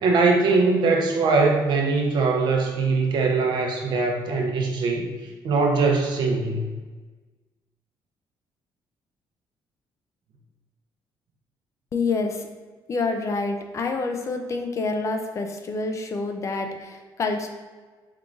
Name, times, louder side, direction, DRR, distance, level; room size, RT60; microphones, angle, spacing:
voice 1, 0.0-5.1 5.4-6.7, right 3 dB, 60° right, 1 dB, 0.7 m, -21 dB
voice 2, 11.9-12.4 12.9-17.5, left 3 dB, 35° left, 4 dB, 0.4 m, -27 dB
4.5 x 3.5 x 2.5 m, 1.4 s
cardioid pair, 140°, 9 cm